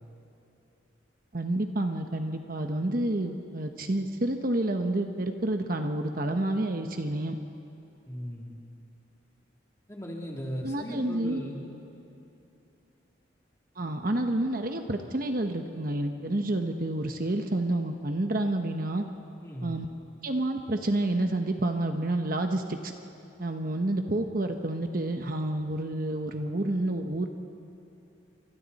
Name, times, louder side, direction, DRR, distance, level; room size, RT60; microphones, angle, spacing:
voice 1, 1.3-7.4 10.6-11.4 13.8-19.0 19.6-19.9 20.2-22.9 23.4-27.3, right 1 dB, 45° right, 5 dB, 1.1 m, -29 dB
voice 2, 8.0-8.5 9.9-11.7 19.4-19.8, equal, 15° left, -2 dB, 3.1 m, -37 dB
30.0 x 26.0 x 4.2 m, 2.9 s
head